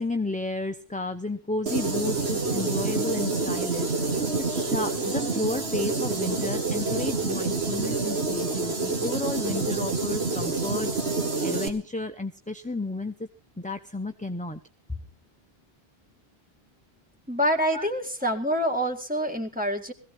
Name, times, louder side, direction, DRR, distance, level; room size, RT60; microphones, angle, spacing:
voice 1, 0.0-3.9 4.4-10.9 11.4-13.3 13.6-14.6 17.7-17.9, left 2 dB, 10° left, 7 dB, 0.7 m, -32 dB
sound 1, 1.7-11.7, right 3 dB, 80° right, 2.5 m, -27 dB
voice 2, 17.3-19.9, equal, 10° right, 3 dB, 2.2 m, -26 dB
21.0 x 15.5 x 3.3 m, 0.36 s
omnidirectional pair, 1.1 m